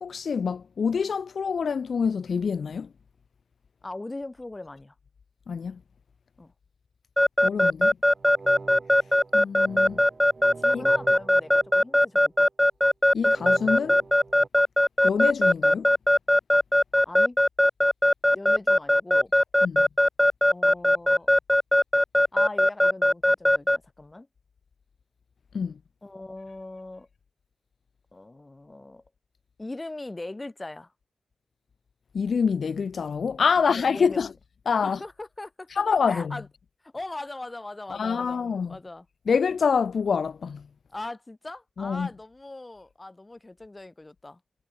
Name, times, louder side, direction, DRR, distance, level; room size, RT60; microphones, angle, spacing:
voice 1, 0.0-2.9 5.5-5.8 7.4-8.0 9.3-10.0 10.7-10.8 13.1-14.0 15.0-15.9 19.6-19.9 25.5-25.8 32.1-34.3 34.7-35.0 35.7-36.4 37.9-38.8 39.3-40.7 41.8-42.1, left 6 dB, 75° left, 0.4 m, -26 dB
voice 2, 3.8-4.9 6.4-6.5 10.6-12.5 17.1-17.4 18.3-19.3 20.5-21.3 22.3-24.3 26.0-27.1 28.1-29.0 29.6-30.9 33.6-34.2 34.8-35.7 36.1-36.5 36.8-39.1 40.9-44.4, left 2 dB, 25° left, 4.1 m, -40 dB
Keyboard (musical) / Alarm, 7.2-23.8, left 1 dB, 10° left, 0.8 m, -19 dB
sound 1, 8.1-12.4 13.3-14.5, right 3 dB, 45° right, 5.4 m, -44 dB
cardioid pair, 70°, 0 cm